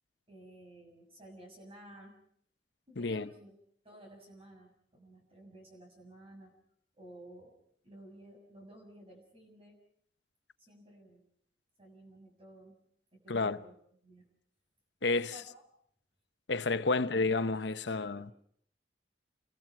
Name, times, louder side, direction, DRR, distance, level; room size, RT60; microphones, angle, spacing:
voice 1, 0.3-2.2 2.9-3.6 3.8-6.6 6.9-7.5 7.8-9.8 10.6-11.2 11.8-12.8 13.1-13.8 14.0-14.3 15.2-15.6 16.9-17.1 17.7-18.3, right 1 dB, 30° right, 6.6 m, -54 dB
voice 2, 3.0-3.3 13.3-13.6 15.0-15.3 16.5-18.3, left 3 dB, 75° left, 0.9 m, -30 dB
29.0 x 22.0 x 6.0 m
head